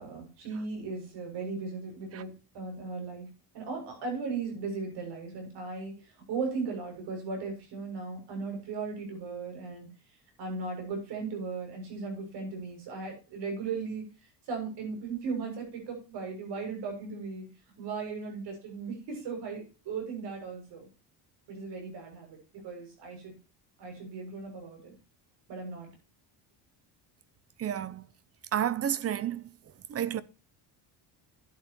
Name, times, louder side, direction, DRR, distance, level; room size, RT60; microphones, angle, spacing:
voice 1, 0.0-3.3 3.5-9.9 10.4-14.1 14.5-17.5 17.8-20.9 21.5-23.3 23.8-24.9 25.5-25.9, right 4 dB, 70° right, 6.9 m, -37 dB
voice 2, 27.6-28.0 28.5-29.5 29.9-30.2, right 10 dB, 35° right, 0.6 m, -30 dB
12.0 x 9.7 x 3.1 m
cardioid pair, 150°, 42 cm